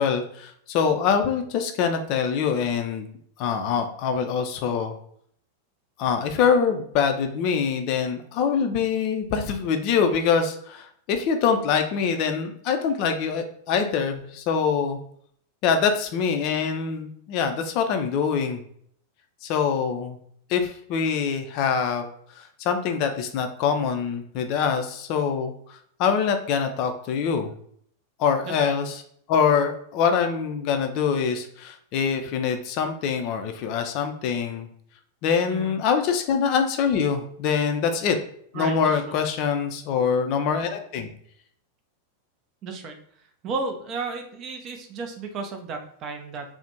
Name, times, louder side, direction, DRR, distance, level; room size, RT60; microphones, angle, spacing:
voice 1, 0.0-3.1 3.4-5.0 6.0-15.0 15.6-18.6 19.4-20.2 20.5-22.0 22.4-27.5 28.2-29.0 29.3-34.7 35.2-38.2 38.5-41.1, left 6 dB, 45° left, 6 dB, 0.3 m, -24 dB
voice 2, 38.5-39.2 42.6-42.9 43.4-46.4, right 4 dB, 35° right, 4 dB, 0.4 m, -33 dB
2.4 x 2.0 x 2.8 m, 0.65 s
figure-of-eight pair, 90°, 0 cm